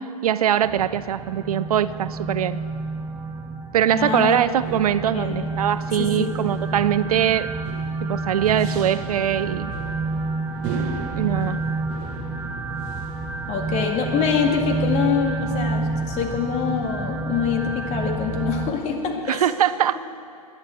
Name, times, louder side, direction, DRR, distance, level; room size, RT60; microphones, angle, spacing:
voice 1, 0.2-2.6 3.7-7.5 8.0-9.7 11.2-11.6 19.3-20.0, right 10 dB, 75° right, 16 dB, 0.5 m, -22 dB
sound 1, 0.6-18.7, right 3 dB, 10° right, 1.1 m, -29 dB
sound 2, 3.8-15.3, right 6 dB, 40° right, 1.2 m, -39 dB
voice 2, 3.9-4.4 5.1-5.4 6.0-6.3 13.5-19.4, left 6 dB, 35° left, 2 dB, 2.1 m, -25 dB
22.5 x 10.5 x 4.5 m, 2.7 s
hypercardioid pair, 110°, 19 cm